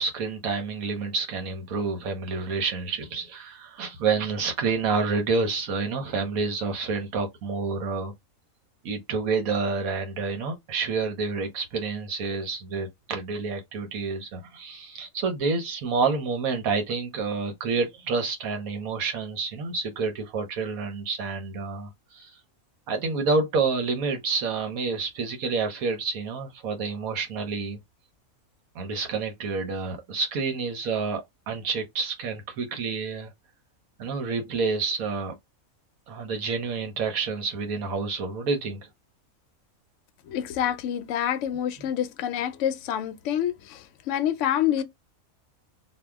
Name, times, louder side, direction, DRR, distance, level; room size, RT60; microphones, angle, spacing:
voice 1, 0.0-8.1 8.8-22.3 22.9-27.8 28.7-33.3 34.0-35.3 36.1-38.8, right 4 dB, 75° right, 1.2 m, -28 dB
voice 2, 40.2-44.8, left 10 dB, 70° left, 0.8 m, -27 dB
2.8 x 2.3 x 3.4 m
omnidirectional pair, 1.5 m